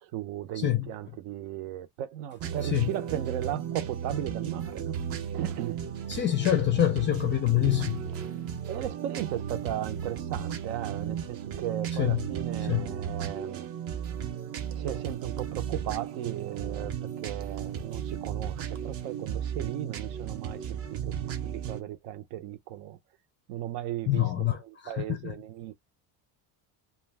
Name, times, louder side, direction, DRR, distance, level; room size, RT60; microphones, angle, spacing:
voice 1, 0.0-4.9 5.3-5.8 8.7-13.7 14.8-23.0 23.5-25.7, right 12 dB, 75° right, 0.7 m, -36 dB
sound 1, 2.4-21.8, right 8 dB, 35° right, 0.4 m, -35 dB
voice 2, 6.1-8.0 12.0-12.2 12.7-12.9 24.1-24.6 25.2-25.3, left 13 dB, 30° left, 0.4 m, -25 dB
2.4 x 2.2 x 3.3 m
cardioid pair, 155°, 44 cm